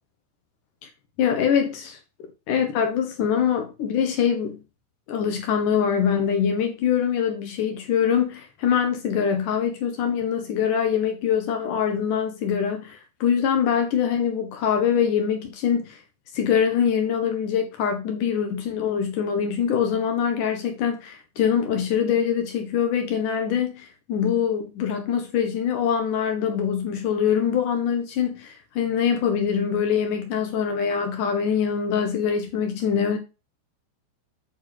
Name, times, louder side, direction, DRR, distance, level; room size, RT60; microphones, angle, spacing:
voice 1, 1.2-2.0 2.5-4.6 5.1-16.0 16.3-33.2, left 7 dB, 70° left, 2.0 m, -24 dB
8.8 x 4.6 x 4.8 m
omnidirectional pair, 5.4 m